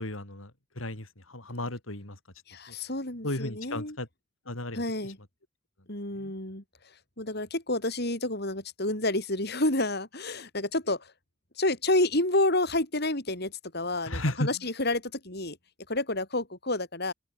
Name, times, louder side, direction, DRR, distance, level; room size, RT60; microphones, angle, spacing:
voice 1, 0.0-2.2 2.7-2.8 3.2-4.1 4.4-5.1 6.2-6.3 14.0-14.5, left 1 dB, 85° left, 5.0 m, -34 dB
voice 2, 2.5-4.0 4.7-5.2 5.9-6.6 7.2-11.1 11.6-15.6 15.9-17.1, left 2 dB, 55° left, 6.6 m, -29 dB
open air
head